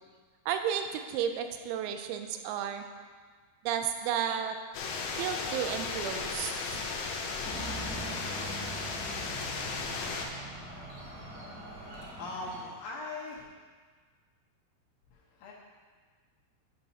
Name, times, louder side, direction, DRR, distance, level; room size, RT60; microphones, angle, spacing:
voice 1, 0.5-2.8 3.6-4.6 5.1-6.9, right 8 dB, 85° right, 7 dB, 3.3 m, -33 dB
sound 1, 4.7-10.3, left 4 dB, 90° left, 2.3 m, -35 dB
sound 2, 5.4-12.1, equal, 35° right, 1.9 m, -52 dB
sound 3, 7.4-12.6, right 1 dB, 55° right, 3.5 m, -43 dB
voice 2, 11.7-13.4 15.1-15.5, left 2 dB, 75° left, -5 dB, 3.3 m, -41 dB
11.0 x 6.6 x 2.8 m, 1.5 s
omnidirectional pair, 6.0 m